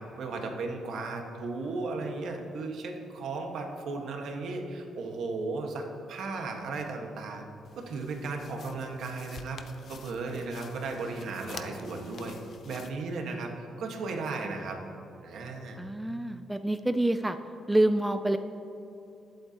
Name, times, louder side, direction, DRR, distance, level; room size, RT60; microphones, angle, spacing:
voice 1, 0.2-7.5 7.7-9.6 9.9-12.4 12.6-14.8 15.2-15.9, right 3 dB, 70° right, 2 dB, 1.5 m, -35 dB
sound 1, 7.6-12.9, left 5 dB, 50° left, 0.6 m, -48 dB
voice 2, 15.8-17.4 17.7-18.4, right 1 dB, 5° right, 8 dB, 0.3 m, -26 dB
20.5 x 8.0 x 2.9 m, 2.8 s
cardioid pair, 135°, 0 cm